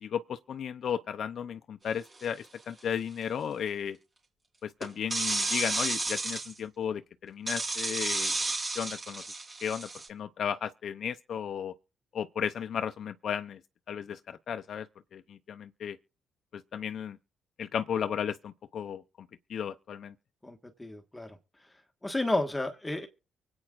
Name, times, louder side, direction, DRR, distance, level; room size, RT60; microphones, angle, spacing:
voice 1, 0.0-4.0 4.6-8.3 8.8-9.2 9.6-11.7 12.1-13.6 13.9-14.9 15.1-16.0 16.5-17.2 17.6-20.1, left 8 dB, 60° left, 0.5 m, -34 dB
sound 1, 2.2-2.4 4.8-6.5 7.5-10.1, right 2 dB, 30° right, 3.5 m, -32 dB
voice 2, 20.4-21.4 22.0-23.1, left 2 dB, 10° left, 1.4 m, -32 dB
24.0 x 8.7 x 2.4 m
cardioid pair, 90°, 0 cm